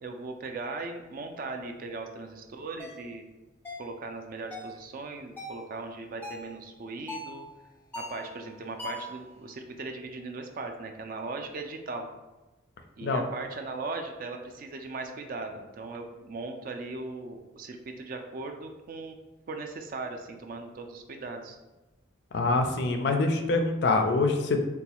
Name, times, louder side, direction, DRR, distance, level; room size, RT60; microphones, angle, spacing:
voice 1, 0.0-3.2 3.8-7.4 8.0-12.1 13.0-19.2 19.5-21.6, right 3 dB, 45° right, 4 dB, 0.3 m, -38 dB
sound 1, 2.8-3.0 3.6-3.9 4.5-4.8 5.4-5.6 6.2-6.5 7.1-7.4 7.9-8.3 8.8-9.1, left 1 dB, 10° left, 0.6 m, -39 dB
voice 2, 22.3-24.6, left 3 dB, 55° left, 5 dB, 0.3 m, -25 dB
4.0 x 2.2 x 2.8 m, 1.1 s
head